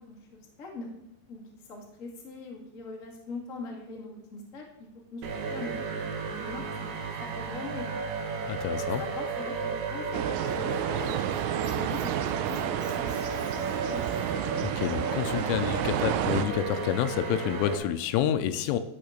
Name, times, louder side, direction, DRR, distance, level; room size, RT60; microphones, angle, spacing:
voice 1, 0.1-0.9 1.3-1.4 1.7-4.7 5.1-6.0 6.4-7.9 8.8-11.2 11.7-13.6 13.9-14.0, left 3 dB, 55° left, -1 dB, 0.8 m, -42 dB
sound 1, 5.2-17.7, right 5 dB, 65° right, 2.3 m, -33 dB
voice 2, 8.5-9.0 14.6-18.8, left 11 dB, 80° left, 10 dB, 3.1 m, -28 dB
sound 2, 10.1-16.5, right 12 dB, 85° right, 3.1 m, -31 dB
Squeak, 10.2-14.4, left 1 dB, 10° left, 2.8 m, -52 dB
12.5 x 6.3 x 6.5 m, 0.85 s
omnidirectional pair, 5.8 m